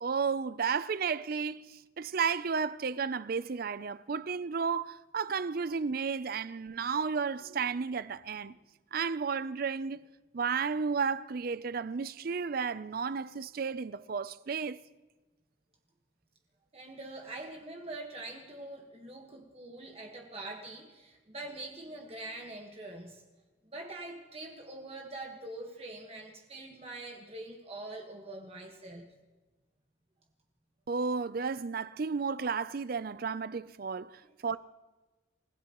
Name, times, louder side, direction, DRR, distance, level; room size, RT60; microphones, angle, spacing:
voice 1, 0.0-8.6 8.9-10.1 10.3-14.8 30.9-34.6, right 5 dB, 50° right, 0.5 m, -33 dB
voice 2, 16.7-23.2 23.7-29.1, right 2 dB, 30° right, 1.5 m, -44 dB
29.0 x 16.0 x 3.0 m
head